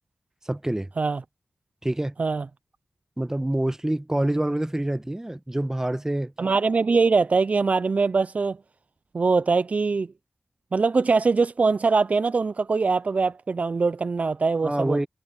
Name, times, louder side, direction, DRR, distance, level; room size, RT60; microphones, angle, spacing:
voice 1, 0.5-0.9 1.8-2.1 3.2-6.3 14.6-15.1, right 1 dB, 20° right, 1.1 m, -26 dB
voice 2, 6.4-8.6 9.1-10.1 10.7-15.1, right 4 dB, 60° right, 0.4 m, -22 dB
cardioid pair, 50°, 3 cm